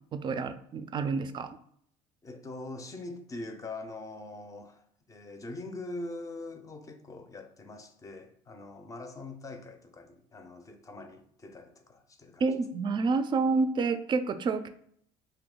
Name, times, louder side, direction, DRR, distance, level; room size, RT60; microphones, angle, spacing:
voice 1, 0.1-1.6 12.4-14.7, right 4 dB, 35° right, 0.3 m, -28 dB
voice 2, 2.2-12.4, left 2 dB, 25° left, 0.5 m, -43 dB
2.7 x 2.2 x 3.7 m
supercardioid pair, 90°, 14 cm